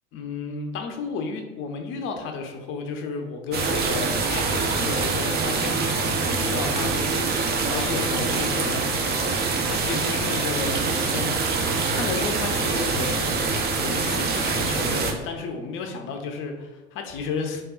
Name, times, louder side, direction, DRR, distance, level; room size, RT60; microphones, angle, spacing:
voice 1, 0.1-13.4 13.6-17.6, left 4 dB, 40° left, 4 dB, 0.5 m, -33 dB
sound 1, 3.5-15.1, right 4 dB, 30° right, 0.5 m, -25 dB
3.5 x 2.3 x 2.4 m, 1.1 s
figure-of-eight pair, 60°, 33 cm